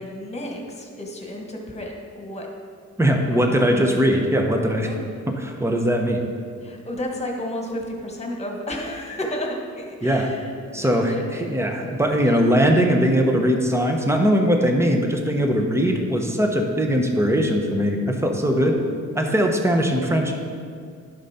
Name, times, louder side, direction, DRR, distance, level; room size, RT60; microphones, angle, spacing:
voice 1, 0.0-2.5 3.3-4.0 4.9-5.0 6.6-12.4 18.4-19.0, left 1 dB, 20° left, 1 dB, 1.7 m, -33 dB
voice 2, 3.0-4.9 5.3-6.2 10.0-10.3 10.7-18.8 19.1-20.3, equal, 10° right, 3 dB, 1.1 m, -20 dB
11.0 x 5.4 x 4.4 m, 2.2 s
cardioid pair, 90°, 30 cm